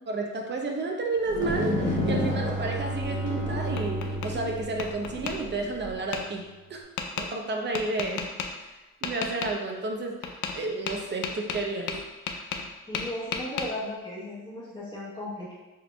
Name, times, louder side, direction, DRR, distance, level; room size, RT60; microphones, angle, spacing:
voice 1, 0.1-6.8 7.2-8.3 8.6-11.9 12.3-12.4, right 3 dB, 35° right, 2 dB, 0.7 m, -31 dB
sound 1, 1.3-5.9, left 1 dB, 40° left, 1.2 m, -32 dB
Bowed string instrument, 1.3-5.8, right 2 dB, 85° right, 1.1 m, -34 dB
Tap, 3.3-4.3 4.8-5.4 6.1-6.2 7.0-7.3 7.7-8.5 9.0-9.5 10.2-10.6 10.9-12.7 12.9-13.7, left 6 dB, 75° left, 0.5 m, -33 dB
voice 2, 12.9-15.5, left 1 dB, 15° left, -9 dB, 1.2 m, -36 dB
6.7 x 2.6 x 2.2 m, 1.1 s
cardioid pair, 90°, 30 cm